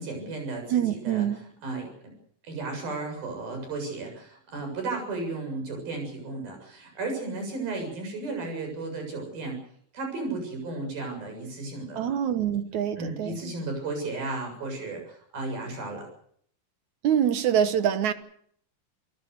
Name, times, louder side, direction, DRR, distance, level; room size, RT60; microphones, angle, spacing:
voice 1, 0.0-2.1 2.5-9.6 9.9-12.1 12.7-16.1, right 3 dB, 85° right, 4 dB, 9.2 m, -34 dB
voice 2, 0.7-1.4 12.0-13.5 17.0-18.1, right 9 dB, 65° right, 11 dB, 2.3 m, -25 dB
28.5 x 18.5 x 6.7 m, 0.65 s
omnidirectional pair, 4.1 m